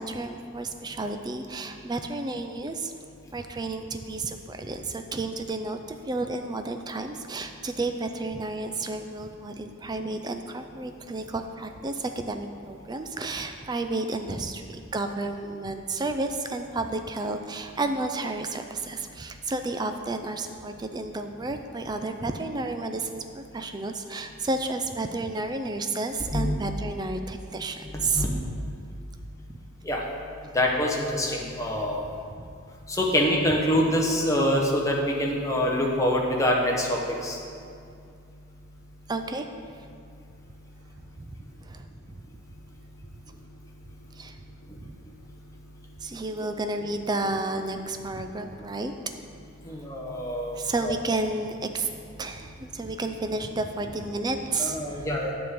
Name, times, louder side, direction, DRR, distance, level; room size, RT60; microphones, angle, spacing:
voice 1, 0.0-2.9 3.3-28.3 32.4-32.5 39.1-39.5 39.7-39.9 41.2-41.3 41.6-41.9 43.1-43.2 44.1-44.4 44.8-44.9 46.0-48.9 49.8-49.9 50.5-51.9 52.2-55.3, right 2 dB, 20° right, 7 dB, 0.4 m, -31 dB
voice 2, 27.9-28.3 29.8-30.0 30.5-32.0 32.9-37.4 49.7-50.9 54.6-55.3, left 1 dB, 15° left, -2 dB, 0.9 m, -25 dB
9.4 x 3.7 x 6.8 m, 2.4 s
head